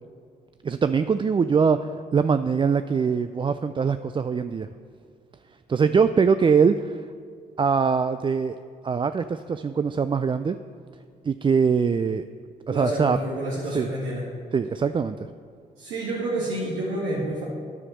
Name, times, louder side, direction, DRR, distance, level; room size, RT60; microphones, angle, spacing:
voice 1, 0.6-4.7 5.7-7.0 7.6-8.6 8.8-10.6 11.2-12.3 12.7-13.2 13.7-13.9 14.5-15.3, right 6 dB, 25° right, 11 dB, 0.4 m, -22 dB
voice 2, 12.7-14.3 15.8-17.4, right 1 dB, 75° right, -6 dB, 2.0 m, -28 dB
9.9 x 7.2 x 6.5 m, 2.2 s
hypercardioid pair, 50°, 20 cm